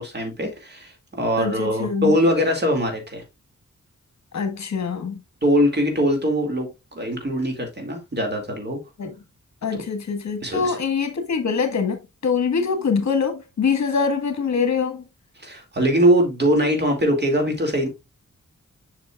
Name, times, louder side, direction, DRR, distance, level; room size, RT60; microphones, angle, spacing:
voice 1, 0.0-3.2 5.4-8.8 9.7-9.8 10.4-10.8 15.4-17.9, equal, 35° right, 2.3 m, -22 dB
voice 2, 1.4-2.1 4.3-5.2 9.0-9.1 9.6-15.0, left 5 dB, 65° left, 1.6 m, -24 dB
7.6 x 5.9 x 2.3 m
wide cardioid pair, 115°, 30 cm